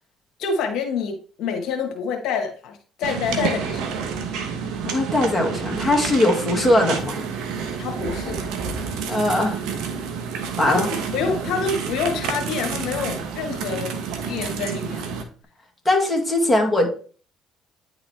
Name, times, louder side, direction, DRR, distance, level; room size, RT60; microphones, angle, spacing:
voice 1, 0.4-4.0 7.8-8.5 10.6-10.8 11.1-14.0 14.3-15.2, left 5 dB, 70° left, 3 dB, 1.3 m, -27 dB
sound 1, 3.0-15.2, right 6 dB, 75° right, 1.1 m, -29 dB
voice 2, 4.9-7.2 9.1-9.6 10.6-10.9 15.9-16.9, left 1 dB, 10° left, 0 dB, 2.1 m, -20 dB
9.6 x 3.9 x 3.4 m, 0.42 s
supercardioid pair, 75°, 0 cm